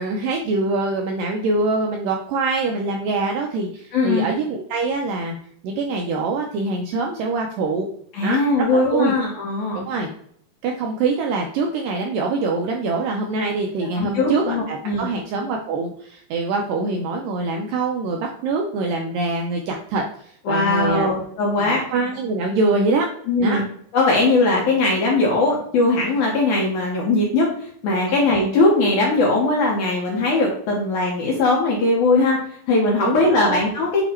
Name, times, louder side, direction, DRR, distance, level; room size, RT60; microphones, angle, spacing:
voice 1, 0.0-5.4 5.6-7.9 8.2-8.4 8.7-9.1 9.9-10.1 10.6-21.1 21.9-23.1 23.4-23.6 33.0-33.6, right 3 dB, 80° right, 1 dB, 2.0 m, -24 dB
voice 2, 3.9-4.3 8.1-9.9 14.0-15.1 20.5-21.8 23.3-23.6 23.9-32.4 32.7-34.0, left 2 dB, 70° left, -2 dB, 1.9 m, -20 dB
8.2 x 2.9 x 4.3 m, 0.62 s
omnidirectional pair, 4.6 m